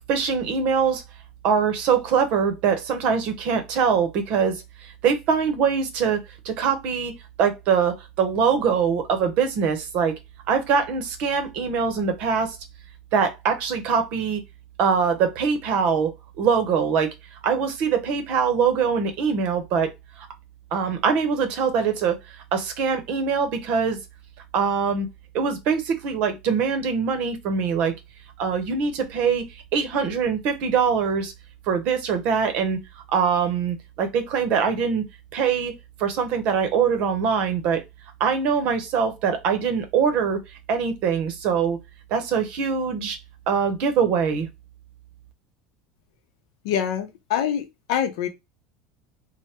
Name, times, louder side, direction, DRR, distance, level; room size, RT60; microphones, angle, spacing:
voice 1, 0.1-1.0 1.4-7.1 7.4-10.2 10.5-12.6 13.1-14.4 14.8-16.1 16.4-17.1 17.4-19.9 20.7-22.2 22.5-24.0 24.5-25.1 25.3-27.9 28.4-29.4 29.7-31.3 31.7-32.8 33.1-35.1 35.3-35.7 36.0-37.8 38.2-40.4 40.7-41.8 42.1-43.2 43.5-44.5, right 6 dB, 50° right, 0.7 m, -23 dB
voice 2, 46.6-48.3, left 9 dB, 80° left, 0.6 m, -25 dB
3.3 x 2.1 x 2.9 m
cardioid pair, 165°, 3 cm